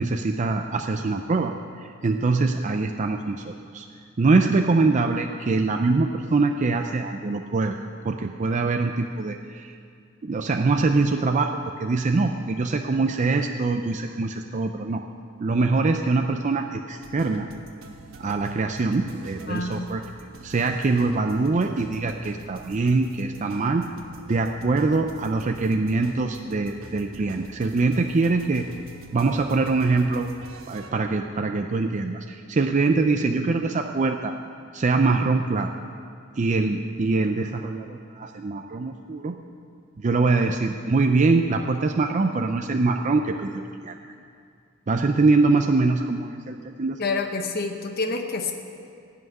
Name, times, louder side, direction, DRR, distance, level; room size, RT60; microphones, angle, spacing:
voice 1, 0.0-3.9 4.2-7.8 8.0-9.8 10.2-15.0 15.4-17.5 18.2-20.0 20.4-23.8 24.3-28.7 29.1-30.3 30.7-34.3 34.7-35.7 36.4-39.4 40.0-44.0 44.9-47.0, right 3 dB, 35° right, 4 dB, 0.5 m, -23 dB
sound 1, 17.0-30.9, right 2 dB, 90° right, 1.1 m, -46 dB
voice 2, 19.5-19.9 47.0-48.5, left 3 dB, 50° left, 4 dB, 0.9 m, -28 dB
16.5 x 5.8 x 9.3 m, 2.3 s
head